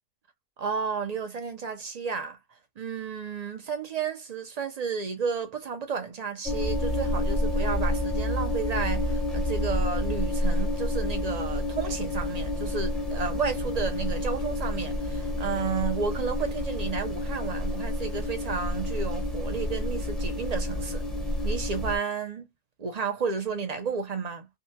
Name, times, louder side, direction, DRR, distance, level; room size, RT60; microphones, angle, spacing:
voice 1, 0.6-2.4 2.8-21.0 21.4-22.5 22.8-24.5, right 5 dB, 60° right, 0.4 m, -32 dB
sound 1, 6.5-22.0, left 1 dB, ahead, 0.5 m, -29 dB
3.7 x 2.1 x 2.7 m
omnidirectional pair, 1.5 m